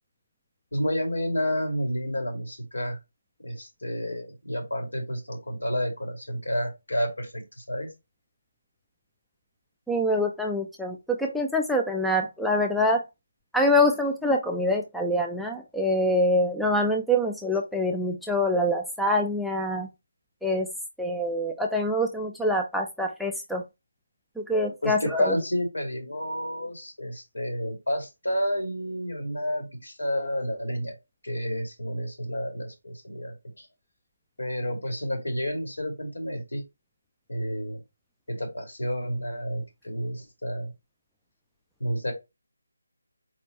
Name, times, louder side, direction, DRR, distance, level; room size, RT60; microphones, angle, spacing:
voice 1, 0.7-3.0 3.4-7.9 24.8-31.0 31.2-33.7 34.4-36.6 37.3-37.8 38.3-40.7 41.8-42.1, equal, 65° left, 3 dB, 2.4 m, -30 dB
voice 2, 9.9-13.0 13.5-19.9 20.4-20.7 21.0-23.6 24.5-25.3, left 1 dB, ahead, 1 dB, 0.3 m, -25 dB
4.3 x 4.1 x 3.0 m, 0.23 s
figure-of-eight pair, 155°, 0 cm